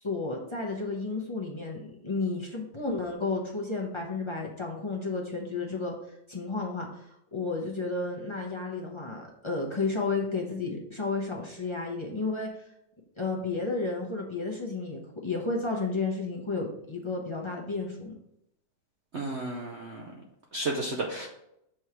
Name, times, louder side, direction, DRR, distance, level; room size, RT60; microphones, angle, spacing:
voice 1, 0.0-5.9 6.3-12.5 13.2-18.1, left 3 dB, 25° left, -1 dB, 0.6 m, -32 dB
voice 2, 19.1-20.1 20.5-21.3, right 2 dB, 55° right, -1 dB, 0.8 m, -32 dB
6.2 x 3.2 x 5.7 m, 0.78 s
omnidirectional pair, 2.0 m